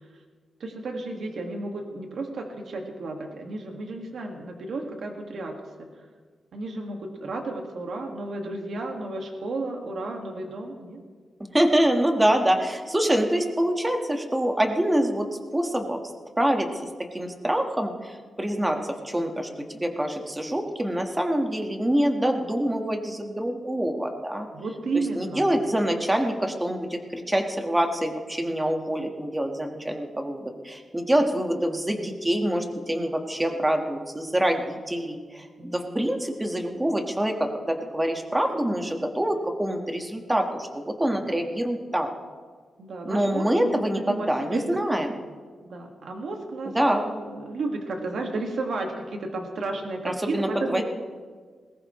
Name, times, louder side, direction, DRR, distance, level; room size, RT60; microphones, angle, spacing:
voice 1, 0.6-5.9 6.5-11.0 24.5-25.5 29.9-30.0 35.6-36.1 41.3-41.4 42.8-44.6 45.6-50.8, right 2 dB, 75° right, 2 dB, 2.0 m, -33 dB
voice 2, 11.5-15.3 15.5-16.0 16.4-16.7 17.1-19.5 19.7-24.5 25.1-42.1 43.0-45.2 46.7-47.1 50.0-50.8, right 1 dB, 15° right, 3 dB, 1.7 m, -25 dB
21.0 x 19.0 x 3.2 m, 1.6 s
wide cardioid pair, 110°, 0 cm